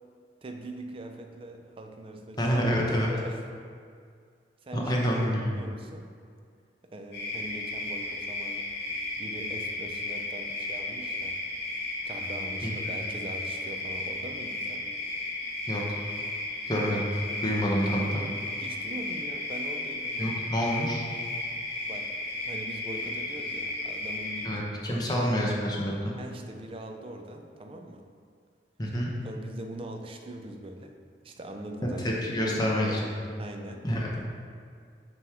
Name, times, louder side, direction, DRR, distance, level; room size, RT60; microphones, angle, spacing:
voice 1, 0.4-2.5 3.1-3.4 4.6-5.0 5.3-6.1 6.8-8.8 9.2-11.4 12.0-14.9 18.6-20.5 21.9-22.2 22.4-25.3 26.2-28.1 29.2-31.0 31.2-32.0 32.3-33.9, right 1 dB, 30° right, 4 dB, 0.4 m, -41 dB
voice 2, 2.4-3.1 4.7-5.6 12.6-12.9 15.7-15.8 16.7-17.1 17.4-18.2 20.2-21.0 24.4-26.1 28.8-29.1 32.0-33.0 33.8-34.2, equal, 20° left, -3 dB, 0.8 m, -27 dB
sound 1, 7.1-24.5, left 2 dB, 65° left, 1.2 m, -34 dB
6.9 x 3.0 x 4.8 m, 2.2 s
head